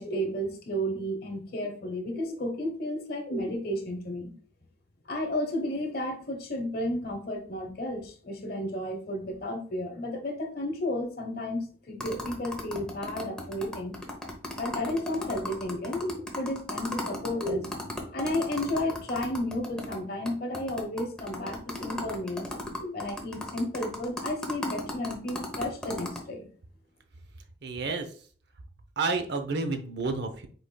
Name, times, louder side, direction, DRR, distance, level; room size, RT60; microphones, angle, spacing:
voice 1, 0.0-4.3 5.1-14.0 14.5-26.5, left 1 dB, 55° left, 5 dB, 1.1 m, -32 dB
sound 1, 12.0-20.0 20.3-20.4 20.5-26.2, left 1 dB, 5° left, 0.9 m, -36 dB
voice 2, 27.6-28.1 29.0-30.5, right 3 dB, 65° right, 7 dB, 0.7 m, -30 dB
5.0 x 4.2 x 2.2 m, 0.44 s
head